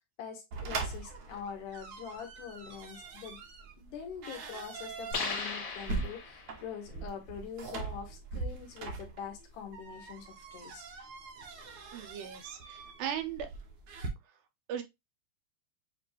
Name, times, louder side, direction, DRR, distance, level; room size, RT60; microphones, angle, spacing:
voice 1, 0.2-3.4 3.8-10.8, left 7 dB, 70° left, 2.4 m, -44 dB
sound 1, 0.5-14.1, right 3 dB, 75° right, 1.4 m, -42 dB
sound 2, 5.1-6.7, left 4 dB, 35° left, 1.6 m, -37 dB
voice 2, 11.9-13.5 14.7-14.8, right 9 dB, 90° right, 2.7 m, -37 dB
7.1 x 2.5 x 2.9 m
omnidirectional pair, 4.1 m